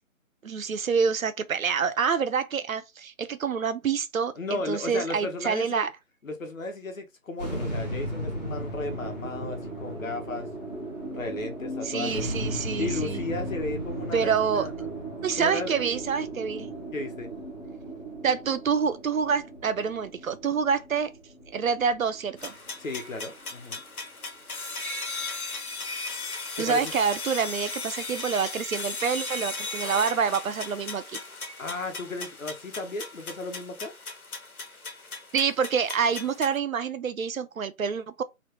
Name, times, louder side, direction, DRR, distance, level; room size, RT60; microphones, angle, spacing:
voice 1, 0.4-5.9 11.8-13.2 14.1-14.7 15.2-16.7 18.2-21.1 21.5-22.5 24.8-25.0 26.6-31.2 35.3-38.2, right 6 dB, 75° right, 0.6 m, -27 dB
voice 2, 4.4-5.9 6.2-10.5 11.1-12.3 12.8-14.9 15.4-15.8 16.9-17.3 22.8-23.8 26.5-26.9 31.6-33.9, left 2 dB, 70° left, 1.0 m, -34 dB
sound 1, 7.4-23.8, right 1 dB, 30° left, 0.8 m, -36 dB
sound 2, 22.4-36.6, left 3 dB, 85° left, 1.2 m, -37 dB
3.1 x 2.1 x 2.9 m
figure-of-eight pair, 180°, 42 cm